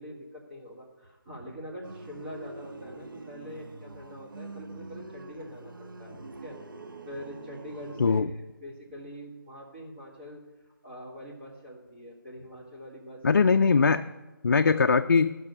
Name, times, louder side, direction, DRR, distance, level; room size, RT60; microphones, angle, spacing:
voice 1, 0.0-6.6 7.1-10.4 10.8-13.2 14.6-14.9, equal, 30° right, -5 dB, 1.8 m, -44 dB
sound 1, 1.8-8.2, right 2 dB, 65° right, 0.8 m, -45 dB
voice 2, 13.2-14.0 14.4-15.3, left 5 dB, 50° left, 7 dB, 0.4 m, -21 dB
11.5 x 6.1 x 5.4 m, 1.1 s
figure-of-eight pair, 165°, 12 cm